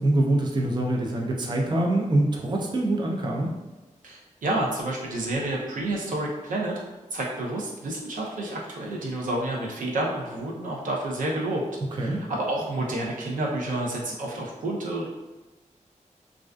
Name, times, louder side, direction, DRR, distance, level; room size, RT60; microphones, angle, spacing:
voice 1, 0.0-3.5 11.9-12.2, right 1 dB, 35° right, 0 dB, 0.4 m, -24 dB
voice 2, 4.0-6.7 7.1-11.6 12.0-12.1 12.4-15.1, right 1 dB, 90° right, -2 dB, 0.5 m, -29 dB
2.4 x 2.3 x 2.2 m, 1.1 s
wide cardioid pair, 85°, 13 cm